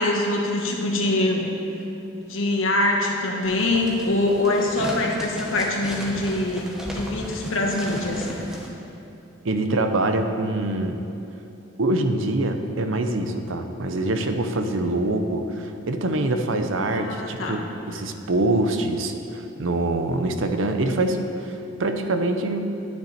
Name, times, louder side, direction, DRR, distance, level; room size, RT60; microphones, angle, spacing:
voice 1, 0.0-1.4 2.1-6.6 6.9-8.4 16.9-17.6, left 2 dB, 85° left, 0 dB, 1.5 m, -24 dB
sound 1, 3.4-8.7, equal, 5° right, 1.1 m, -35 dB
voice 2, 9.4-11.0 11.8-22.6, right 2 dB, 80° right, 6 dB, 0.8 m, -24 dB
10.5 x 9.4 x 4.3 m, 2.8 s
head